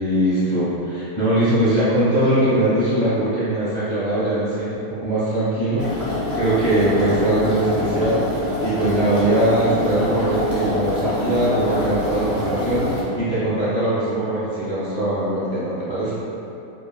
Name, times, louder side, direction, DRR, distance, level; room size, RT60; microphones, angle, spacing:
voice 1, 0.0-16.1, right 1 dB, 30° right, -14 dB, 1.2 m, -21 dB
sound 1, 5.8-13.0, left 1 dB, ahead, 0.6 m, -25 dB
3.3 x 2.4 x 2.4 m, 2.8 s
omnidirectional pair, 1.5 m